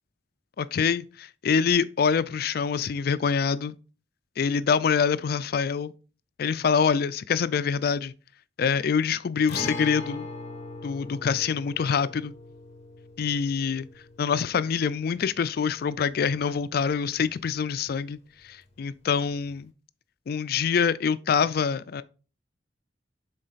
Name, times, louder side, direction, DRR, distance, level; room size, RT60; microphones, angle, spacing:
voice 1, 0.6-3.8 4.4-5.9 6.4-8.1 8.6-10.3 10.8-12.3 13.2-13.9 14.2-18.2 18.4-19.7 20.3-22.0, left 6 dB, 55° left, 0.4 m, -25 dB
Guitar, 9.5-17.1 17.4-17.5 19.5-19.6, left 2 dB, 35° left, 1.0 m, -40 dB
6.4 x 4.0 x 4.0 m
head